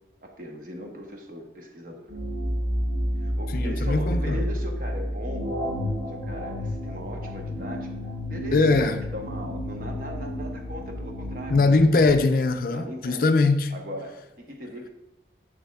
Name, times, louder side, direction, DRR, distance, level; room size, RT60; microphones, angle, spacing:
voice 1, 0.2-2.1 3.2-5.5 6.1-7.9 8.3-8.7 9.1-12.1 12.7-13.3 13.7-14.9, equal, 50° right, 1.0 m, -39 dB
sound 1, 2.1-12.1, equal, 85° right, 1.8 m, -30 dB
voice 2, 3.5-4.4 8.5-9.0 11.5-13.7, left 3 dB, 50° left, 0.4 m, -21 dB
7.0 x 6.6 x 2.3 m
head